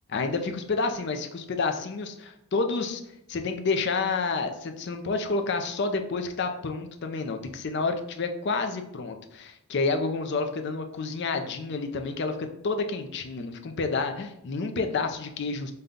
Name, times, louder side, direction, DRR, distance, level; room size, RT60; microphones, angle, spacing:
voice 1, 0.1-3.0 3.3-15.7, left 4 dB, 50° left, 6 dB, 0.4 m, -29 dB
5.3 x 2.2 x 3.7 m, 0.81 s
head